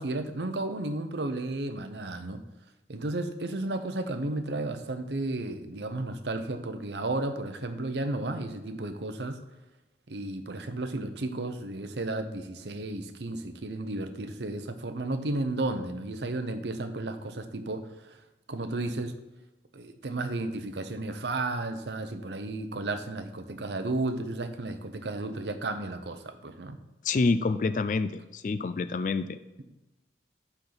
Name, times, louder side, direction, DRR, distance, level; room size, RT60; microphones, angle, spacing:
voice 1, 0.0-2.4 2.9-9.4 10.1-17.9 18.5-19.1 19.7-26.8, right 2 dB, 80° right, 8 dB, 0.8 m, -33 dB
voice 2, 27.0-29.4, left 3 dB, 45° left, 13 dB, 0.4 m, -27 dB
11.5 x 4.4 x 4.0 m, 1.0 s
head